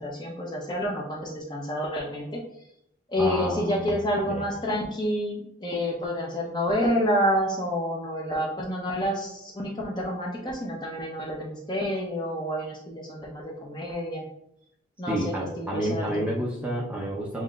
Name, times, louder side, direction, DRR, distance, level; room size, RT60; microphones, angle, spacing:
voice 1, 0.0-2.4 3.1-14.2 15.0-16.4, equal, 25° left, -2 dB, 0.8 m, -29 dB
voice 2, 3.2-4.0 4.3-4.5 15.1-17.4, right 1 dB, 5° right, -4 dB, 0.6 m, -30 dB
7.6 x 2.9 x 2.4 m, 0.76 s
head